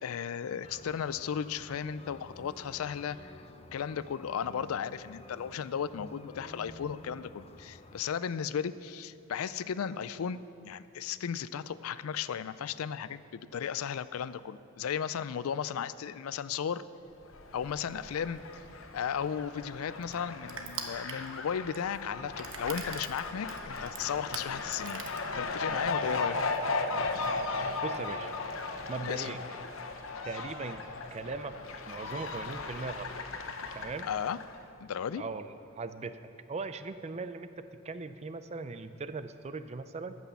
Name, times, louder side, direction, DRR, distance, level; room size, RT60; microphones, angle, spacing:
voice 1, 0.0-3.3 3.7-10.4 10.6-16.8 17.5-18.4 18.9-25.1 25.3-26.4 29.0-29.4 34.0-34.4 34.8-35.2, left 7 dB, 90° left, 16 dB, 0.4 m, -35 dB
sound 1, 0.6-8.0, left 2 dB, 30° left, 0.5 m, -51 dB
Fowl, 17.2-34.6, left 3 dB, 65° left, 0.8 m, -37 dB
Crushing, 19.0-25.8, right 6 dB, 65° right, 1.0 m, -44 dB
voice 2, 27.8-28.3 28.9-29.4 30.2-30.8 31.1-31.6 31.9-33.1 33.7-34.1 35.2-36.2 36.5-40.2, right 3 dB, 30° right, 11 dB, 0.4 m, -39 dB
14.0 x 6.2 x 6.9 m, 2.9 s
head